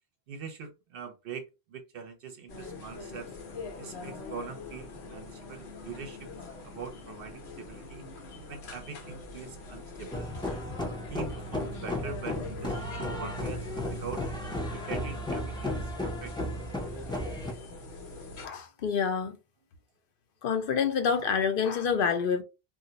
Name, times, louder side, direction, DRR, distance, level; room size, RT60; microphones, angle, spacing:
voice 1, 0.3-3.3 3.8-8.0 8.5-10.3 11.1-14.2 14.7-16.3, right 5 dB, 65° right, 0.7 m, -43 dB
sound 1, 2.5-18.5, left 2 dB, 90° left, 1.0 m, -43 dB
sound 2, 10.1-17.5, left 1 dB, 5° left, 0.4 m, -34 dB
voice 2, 18.4-19.4 20.4-22.4, left 6 dB, 65° left, 0.7 m, -27 dB
2.4 x 2.0 x 3.8 m
omnidirectional pair, 1.1 m